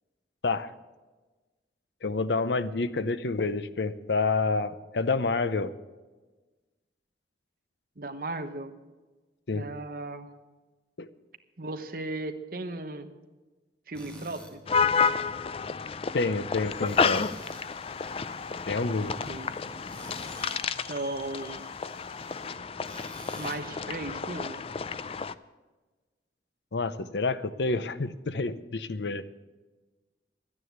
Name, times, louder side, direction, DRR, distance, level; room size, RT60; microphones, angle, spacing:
voice 1, 2.0-5.7 9.5-9.7 11.0-11.1 16.1-17.2 18.7-19.1 26.7-29.2, left 3 dB, 80° left, 14 dB, 0.7 m, -28 dB
voice 2, 8.0-8.7 9.5-10.3 11.6-13.1 13.9-14.6 19.0-19.6 20.7-21.6 23.3-24.6, right 2 dB, 55° right, 8 dB, 1.1 m, -36 dB
Tools, 13.9-14.5 16.8-17.7 19.9-20.6 22.8-23.7, equal, 5° left, 2.1 m, -47 dB
sound 1, 14.7-25.3, left 5 dB, 35° left, 0.4 m, -31 dB
sound 2, 16.6-22.6, left 2 dB, 60° left, 2.0 m, -51 dB
12.5 x 9.8 x 8.0 m, 1.2 s
head